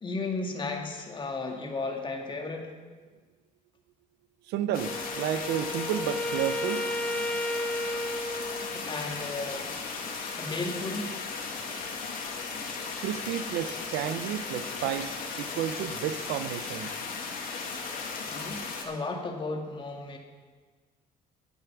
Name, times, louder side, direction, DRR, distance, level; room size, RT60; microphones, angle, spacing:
voice 1, 0.0-2.7 8.5-9.7 10.4-11.2 18.2-20.2, left 3 dB, 30° left, 2 dB, 1.7 m, -34 dB
voice 2, 4.5-6.9 13.0-16.9, right 10 dB, 80° right, 12 dB, 0.6 m, -32 dB
sound 1, 4.7-18.8, left 4 dB, 60° left, 1.9 m, -36 dB
Wind instrument woodwind instrument, 4.8-9.2, left 1 dB, 5° left, 0.7 m, -33 dB
10.5 x 8.2 x 6.0 m, 1.4 s
cardioid pair, 110°, 17 cm